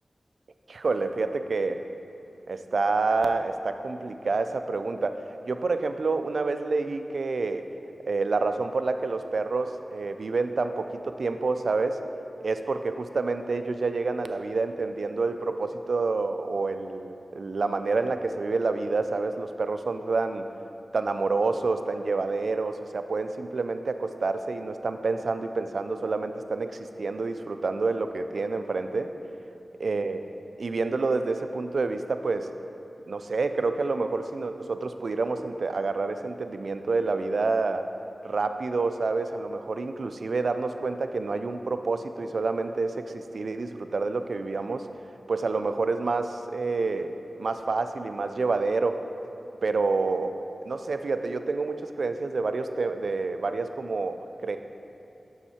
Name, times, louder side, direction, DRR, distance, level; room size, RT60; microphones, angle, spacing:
voice 1, 0.7-1.8 2.5-7.7 8.1-12.0 12.4-20.5 20.9-29.1 29.8-30.3 30.6-32.5 33.1-37.9 38.2-44.8 45.3-47.1 47.4-49.0 49.6-50.4 50.6-54.6, right 3 dB, 75° right, 8 dB, 0.4 m, -28 dB
7.3 x 6.4 x 4.3 m, 2.9 s
wide cardioid pair, 70°, 0 cm